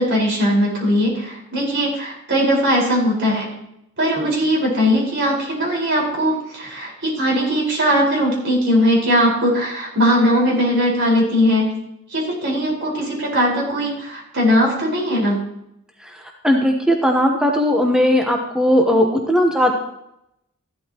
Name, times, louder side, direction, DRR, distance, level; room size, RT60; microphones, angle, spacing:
voice 1, 0.0-3.5 4.0-11.7 12.1-15.4, equal, 55° right, -2 dB, 4.7 m, -19 dB
voice 2, 16.0-19.7, equal, 5° right, 1 dB, 1.0 m, -18 dB
14.5 x 11.5 x 3.0 m, 0.81 s
head